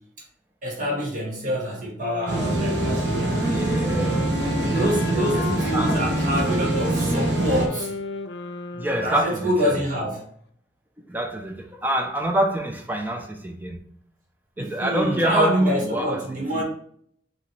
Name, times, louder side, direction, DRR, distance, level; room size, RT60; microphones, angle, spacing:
voice 1, 0.6-4.0 4.7-7.9 9.0-10.3 14.6-16.6, equal, 45° right, -3 dB, 1.4 m, -26 dB
sound 1, 2.0-9.7, left 3 dB, 80° left, 0.5 m, -33 dB
sound 2, 2.3-7.7, right 2 dB, 85° right, 0.9 m, -24 dB
voice 2, 3.4-4.3 4.6-5.4 5.7-6.0 8.7-9.8 11.1-13.8 14.6-16.6, right 1 dB, 10° right, 3 dB, 0.5 m, -27 dB
5.3 x 3.0 x 3.2 m, 0.63 s
head